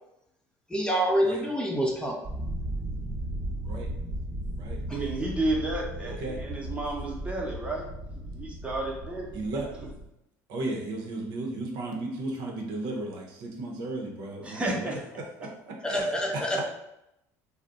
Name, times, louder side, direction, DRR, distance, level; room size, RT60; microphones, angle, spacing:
voice 1, 0.7-2.2 15.8-16.6, equal, 10° left, 0 dB, 0.6 m, -26 dB
sound 1, 2.2-10.1, right 1 dB, 40° right, 1.0 m, -36 dB
voice 2, 4.9-7.9 8.3-9.3 14.4-14.9, right 2 dB, 15° right, -2 dB, 0.8 m, -31 dB
voice 3, 6.1-6.4 9.3-9.7 10.5-16.6, right 2 dB, 65° right, 0 dB, 0.7 m, -35 dB
2.5 x 2.0 x 3.7 m, 0.83 s
supercardioid pair, 80°, 8 cm